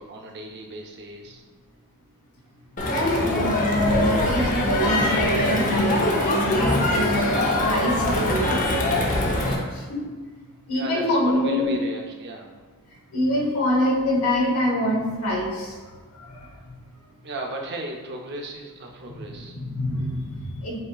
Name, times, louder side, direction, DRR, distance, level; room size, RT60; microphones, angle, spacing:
voice 1, 0.0-1.4 10.7-12.5 17.2-19.5, right 1 dB, 50° right, 1 dB, 0.6 m, -36 dB
Crowd, 2.8-9.5, left 1 dB, 35° left, 0.7 m, -23 dB
voice 2, 3.1-8.6 9.7-10.0 10.7-11.8 13.1-15.8 16.1-16.5 19.1-20.8, equal, 75° left, -2 dB, 1.2 m, -25 dB
7.6 x 2.9 x 2.3 m, 1.4 s
head